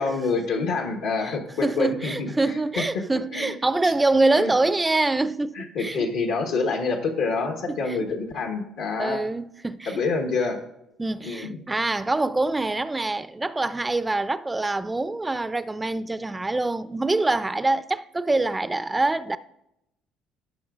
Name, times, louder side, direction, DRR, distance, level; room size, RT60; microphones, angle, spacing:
voice 1, 0.0-2.8 3.3-3.6 4.4-4.5 5.5-9.2 9.9-10.6 11.2-11.5, left 4 dB, 80° left, 1.3 m, -27 dB
voice 2, 1.6-6.1 7.7-8.0 9.0-10.0 11.0-19.4, right 2 dB, 15° right, 0.4 m, -25 dB
14.5 x 6.0 x 2.4 m
supercardioid pair, 85°, 0 cm